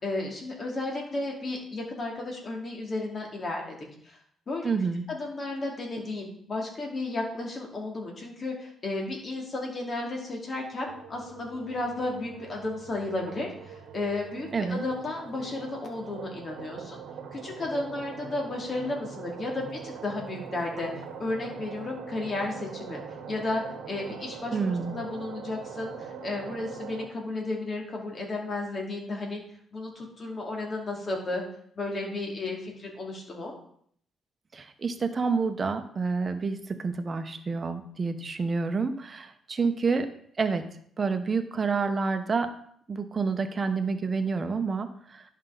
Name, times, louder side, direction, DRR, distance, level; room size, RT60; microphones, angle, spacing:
voice 1, 0.0-3.8 4.0-4.2 4.5-4.7 5.1-17.0 17.3-20.9 21.2-23.0 23.3-29.4 29.7-31.4 31.8-33.5, left 2 dB, 40° left, 0 dB, 2.5 m, -33 dB
voice 2, 4.6-5.0 14.5-14.8 24.5-25.0 34.5-40.1 40.4-40.6 41.0-42.5 42.9-45.2, right 4 dB, 35° right, 8 dB, 1.0 m, -28 dB
sound 1, 10.9-27.1, right 6 dB, 90° right, 1.3 m, -42 dB
11.0 x 5.5 x 4.0 m, 0.63 s
cardioid pair, 90°, 0 cm